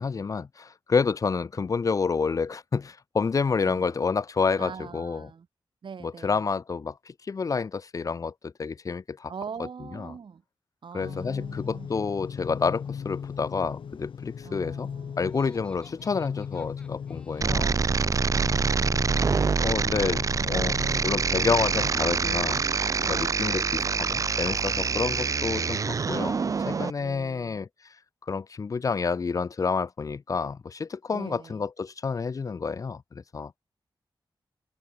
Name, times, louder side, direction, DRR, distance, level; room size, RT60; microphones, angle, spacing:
voice 1, 0.0-5.3 6.0-9.3 9.9-10.1 10.9-14.9 15.2-17.7 19.6-20.2 20.5-20.8 21.0-22.7 23.0-26.4 26.7-27.7 28.3-33.5, left 5 dB, 40° left, 0.5 m, -29 dB
voice 2, 3.7-4.0 4.6-5.5 5.8-6.5 9.3-10.4 10.8-11.9 14.4-15.3 17.4-19.1 19.8-21.2 22.8-24.0 27.0-27.6 31.1-31.6, right 6 dB, 65° right, 3.0 m, -43 dB
sound 1, 11.0-21.9, left 7 dB, 75° left, 1.1 m, -38 dB
Laughter, 15.2-18.0, left 1 dB, 10° left, 4.2 m, -56 dB
sound 2, 17.4-26.9, right 5 dB, 40° right, 0.5 m, -26 dB
wide cardioid pair, 155°, 9 cm